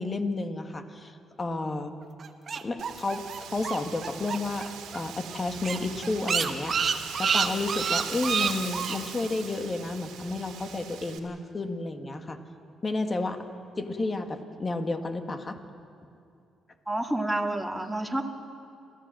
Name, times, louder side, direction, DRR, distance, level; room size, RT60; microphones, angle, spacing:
voice 1, 0.0-1.9 2.6-6.8 7.2-12.4 12.8-13.5 13.8-15.6, left 2 dB, 30° left, 6 dB, 1.8 m, -31 dB
sound 1, 2.2-4.7 4.9-5.0 5.3-5.4 5.6-9.0, right 6 dB, 50° right, 1.3 m, -28 dB
Wind, 2.8-11.2, right 8 dB, 90° right, 2.0 m, -41 dB
voice 2, 16.9-18.3, right 1 dB, 5° right, 2 dB, 2.0 m, -29 dB
27.0 x 14.5 x 7.7 m, 2.5 s
cardioid pair, 90°, 0 cm